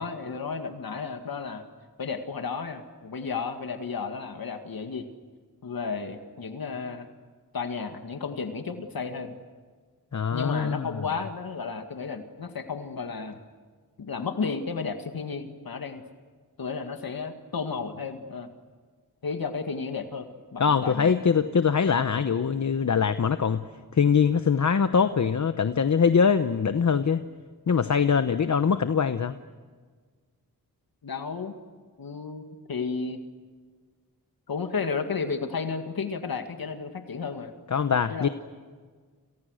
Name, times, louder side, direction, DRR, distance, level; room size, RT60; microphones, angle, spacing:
voice 1, 0.0-1.6 2.0-5.1 5.6-7.1 7.5-9.4 10.3-13.4 14.0-16.0 16.6-18.5 19.2-21.1 31.0-31.5 32.0-33.2 34.5-37.5 38.1-38.3, left 5 dB, 70° left, 6 dB, 2.0 m, -33 dB
voice 2, 10.1-11.0 20.6-23.6 23.9-27.2 27.7-29.4 37.7-38.3, left 6 dB, 50° left, 10 dB, 0.9 m, -23 dB
30.0 x 28.0 x 6.5 m, 1.5 s
wide cardioid pair, 80°, 37 cm